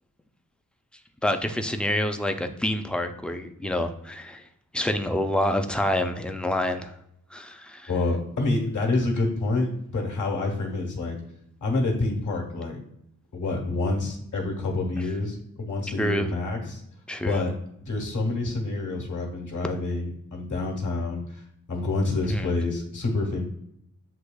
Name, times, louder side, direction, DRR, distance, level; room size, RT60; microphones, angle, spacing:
voice 1, 1.2-4.4 4.7-6.9 7.3-7.9 16.0-16.3 17.1-17.4 22.3-22.5, left 1 dB, 5° left, 6 dB, 0.3 m, -27 dB
voice 2, 7.9-11.2 11.6-12.8 13.3-16.8 17.2-17.5 17.9-21.4 21.7-23.4, left 2 dB, 55° left, 1 dB, 1.2 m, -27 dB
7.8 x 2.8 x 2.3 m, 0.76 s
wide cardioid pair, 115°, 36 cm